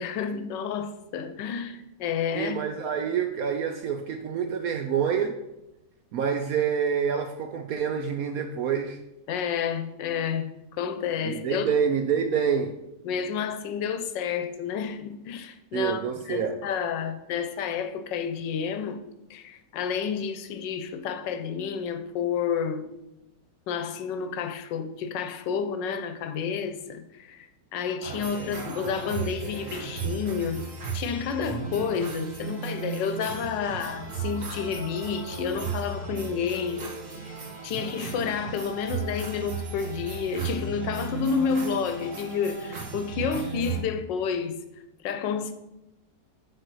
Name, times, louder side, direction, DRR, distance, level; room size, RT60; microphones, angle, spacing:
voice 1, 0.0-2.6 9.3-11.7 13.0-16.0 16.3-19.0 19.3-22.9 23.7-30.7 30.9-37.0 37.6-44.6 45.0-45.5, left 6 dB, 80° left, 1.4 m, -30 dB
voice 2, 2.3-5.4 6.1-9.0 11.2-12.7 15.7-16.6, right 7 dB, 75° right, 0.8 m, -27 dB
sound 1, 28.0-43.8, right 5 dB, 45° right, 1.7 m, -35 dB
6.7 x 4.2 x 6.1 m
omnidirectional pair, 2.0 m